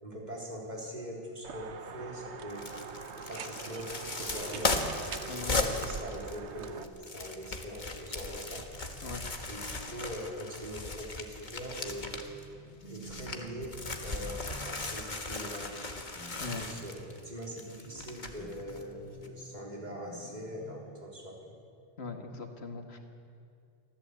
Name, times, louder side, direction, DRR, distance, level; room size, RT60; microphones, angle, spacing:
voice 1, 0.0-2.7 3.2-5.0 5.4-8.7 9.5-12.2 12.8-15.8 16.6-21.4, equal, 40° right, -2 dB, 4.0 m, -42 dB
sound 1, 1.4-6.8, right 6 dB, 85° right, 1.3 m, -43 dB
sound 2, 2.5-12.4 12.8-18.8 19.2-19.3, left 3 dB, 45° left, 1.7 m, -37 dB
voice 2, 5.3-5.6 9.0-9.2 16.4-16.7 22.0-23.0, left 4 dB, 70° left, 4 dB, 2.2 m, -40 dB
sound 3, 12.3-21.1, right 2 dB, 15° right, 5.7 m, -52 dB
24.5 x 15.0 x 8.3 m, 2.4 s
omnidirectional pair, 1.1 m